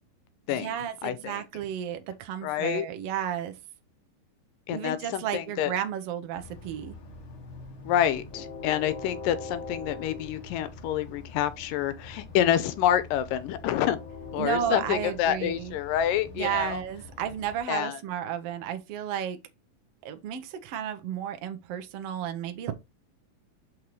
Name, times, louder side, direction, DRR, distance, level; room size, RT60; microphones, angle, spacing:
voice 1, 0.5-3.5 4.7-6.9 14.4-15.8 16.3-19.4 20.0-22.7, right 9 dB, 85° right, 1.3 m, -33 dB
voice 2, 1.0-1.4 2.4-2.9 4.7-5.7 7.9-14.0 14.3-16.8 17.7-18.0, left 10 dB, 85° left, 2.3 m, -27 dB
Train, 6.4-17.6, left 3 dB, 60° left, 1.4 m, -43 dB
6.0 x 5.4 x 3.1 m
omnidirectional pair, 3.9 m